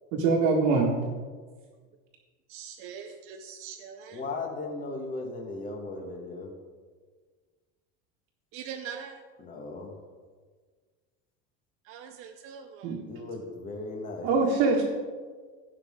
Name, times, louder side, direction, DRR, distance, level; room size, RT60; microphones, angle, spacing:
voice 1, 0.1-0.9 12.8-13.0 14.2-14.8, right 4 dB, 70° right, -4 dB, 1.9 m, -23 dB
voice 2, 2.5-4.2 8.5-9.2 11.8-13.0, right 7 dB, 45° right, 4 dB, 0.6 m, -42 dB
voice 3, 4.1-6.6 9.4-10.0 13.1-14.3, left 3 dB, 25° left, 1 dB, 1.5 m, -37 dB
16.5 x 5.8 x 3.7 m, 1.5 s
cardioid pair, 170°, 31 cm